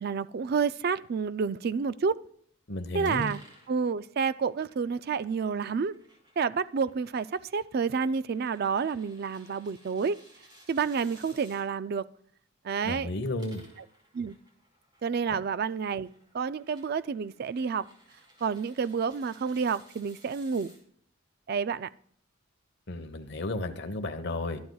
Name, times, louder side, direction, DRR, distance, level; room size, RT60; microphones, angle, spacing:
voice 1, 0.0-2.2 2.9-3.4 3.7-5.9 6.4-10.2 10.7-12.1 12.6-13.1 14.1-14.4 15.0-16.1 16.3-17.9 18.4-20.7 21.5-21.9, right 5 dB, 50° right, 0.4 m, -29 dB
voice 2, 2.7-3.3 12.8-13.6 15.3-15.4 22.9-24.6, left 2 dB, 55° left, 1.1 m, -33 dB
sound 1, 3.0-11.6 13.1-20.8, equal, 20° right, 4.7 m, -58 dB
24.5 x 9.4 x 2.3 m
head